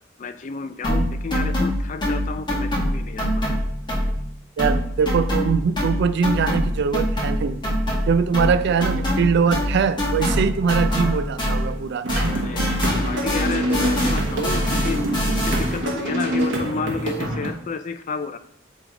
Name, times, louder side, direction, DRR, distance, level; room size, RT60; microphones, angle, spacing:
voice 1, 0.2-3.6 9.1-9.2 9.5-9.6 10.9-11.2 12.3-15.0 15.5-18.4, left 5 dB, 40° left, 0.4 m, -31 dB
sound 1, 0.8-4.3 4.6-11.8 12.1-15.9, equal, 25° left, 1.6 m, -24 dB
voice 2, 4.6-7.6 8.1-12.1, right 6 dB, 60° right, 0.3 m, -22 dB
sound 2, 12.0-17.5, right 1 dB, 75° right, 1.2 m, -26 dB
8.1 x 3.4 x 3.6 m
head